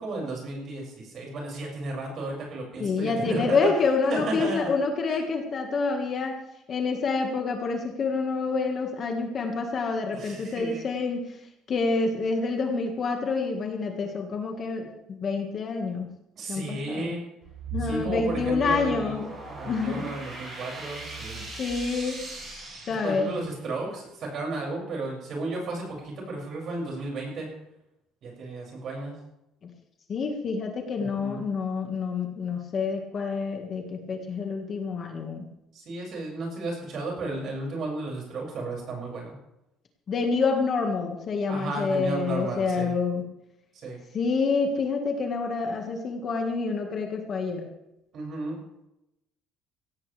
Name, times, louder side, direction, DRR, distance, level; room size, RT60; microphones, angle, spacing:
voice 1, 0.0-3.7 4.1-4.7 5.1-5.2 10.1-10.9 16.4-17.2 17.8-21.4 23.0-27.5 28.2-29.1 31.0-31.4 35.7-39.3 41.5-42.9 43.7-44.0 48.1-48.6, right 2 dB, 40° right, -1 dB, 6.5 m, -33 dB
voice 2, 2.8-6.4 6.7-11.3 11.7-16.1 16.5-17.1 17.7-19.3 19.7-20.1 21.3-22.3 22.9-23.3 30.1-35.4 40.1-43.3 44.1-47.7, left 4 dB, 30° left, 3 dB, 1.8 m, -27 dB
sound 1, 17.4-23.7, right 4 dB, 20° right, 6.4 m, -39 dB
17.0 x 16.0 x 3.5 m, 0.87 s
cardioid pair, 165°, 0 cm